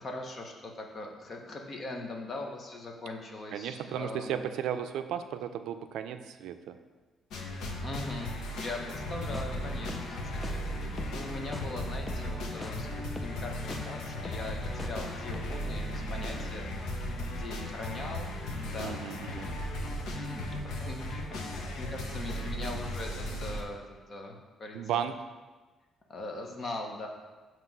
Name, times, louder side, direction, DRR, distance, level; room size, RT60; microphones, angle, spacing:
voice 1, 0.0-4.4 7.8-18.3 18.6-19.7 20.1-23.8 24.1-25.0 26.1-27.1, left 2 dB, 35° left, 2 dB, 0.9 m, -41 dB
voice 2, 3.5-6.8 18.8-19.5 24.7-25.1, right 9 dB, 85° right, 9 dB, 0.4 m, -34 dB
sound 1, 7.3-23.6, left 1 dB, 75° left, 0.9 m, -36 dB
sound 2, 8.9-15.9, left 2 dB, 15° left, 0.5 m, -44 dB
7.5 x 3.0 x 5.9 m, 1.3 s
cardioid pair, 160°, 0 cm